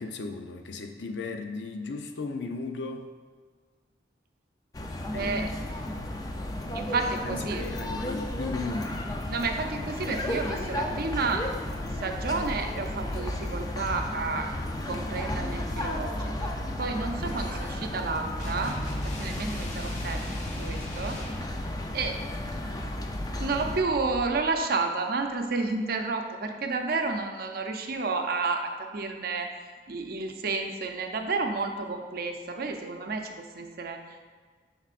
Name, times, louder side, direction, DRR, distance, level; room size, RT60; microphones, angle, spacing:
voice 1, 0.0-3.1 5.1-5.4 7.2-9.0 17.2-17.8, left 3 dB, 80° left, 5 dB, 0.5 m, -36 dB
sound 1, 4.7-23.8, left 1 dB, 20° left, 0.4 m, -33 dB
voice 2, 5.1-5.5 6.7-7.6 9.3-11.5 12.0-14.5 14.9-18.8 19.0-21.2 21.9-22.2 22.6-22.8 23.4-29.5 29.9-34.3, right 3 dB, 60° right, 4 dB, 0.6 m, -31 dB
sound 2, 18.4-21.5, left 1 dB, 45° left, 0.9 m, -40 dB
7.3 x 5.4 x 2.5 m, 1.5 s
head